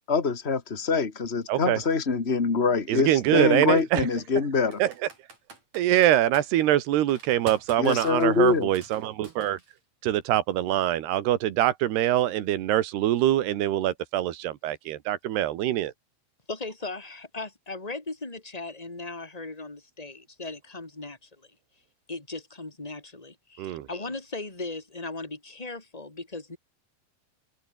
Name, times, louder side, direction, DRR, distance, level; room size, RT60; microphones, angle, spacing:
voice 1, 0.1-4.8 7.8-8.7, left 4 dB, 75° left, 0.5 m, -24 dB
voice 2, 1.5-1.8 2.9-4.1 4.8-4.9 5.7-9.6 10.0-15.9 23.6-23.9, right 13 dB, 70° right, 3.3 m, -24 dB
Computer keyboard, 1.9-2.0 3.6-3.8 4.7-6.5 7.1-9.8, right 4 dB, 40° right, 7.2 m, -45 dB
voice 3, 16.5-21.3 22.1-26.6, left 3 dB, 10° left, 3.6 m, -37 dB
omnidirectional pair, 5.1 m